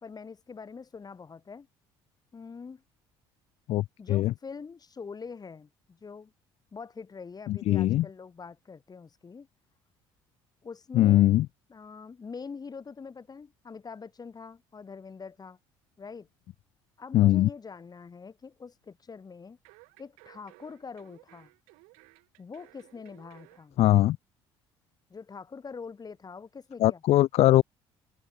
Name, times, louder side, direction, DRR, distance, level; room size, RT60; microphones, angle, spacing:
voice 1, 0.0-1.7 2.3-2.8 4.0-6.3 6.7-9.5 10.6-11.4 11.7-15.6 16.0-16.3 17.0-19.6 20.0-21.5 22.4-23.8 25.1-27.2, left 5 dB, 35° left, 2.6 m, -44 dB
voice 2, 7.5-8.0 11.0-11.4 17.1-17.5 23.8-24.2 26.8-27.6, left 15 dB, 60° left, 0.5 m, -21 dB
sound 1, 19.6-23.7 24.0-24.1, right 32 dB, 80° right, 5.9 m, -57 dB
open air
hypercardioid pair, 65°, 12 cm